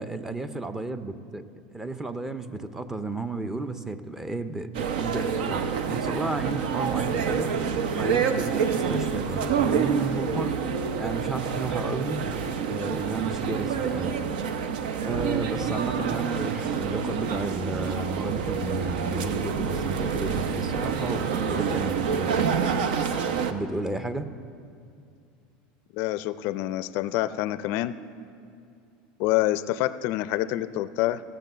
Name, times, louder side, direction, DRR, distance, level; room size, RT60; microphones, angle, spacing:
voice 1, 0.0-1.4 1.7-10.6 11.0-14.2 14.7-22.5 23.3-24.3, right 2 dB, 10° right, 11 dB, 0.5 m, -33 dB
sound 1, 4.7-23.5, right 6 dB, 85° right, 0.7 m, -27 dB
voice 2, 25.9-28.0 29.2-31.2, left 15 dB, 60° left, 15 dB, 0.4 m, -27 dB
16.0 x 6.7 x 6.7 m, 2.4 s
supercardioid pair, 125°, 5 cm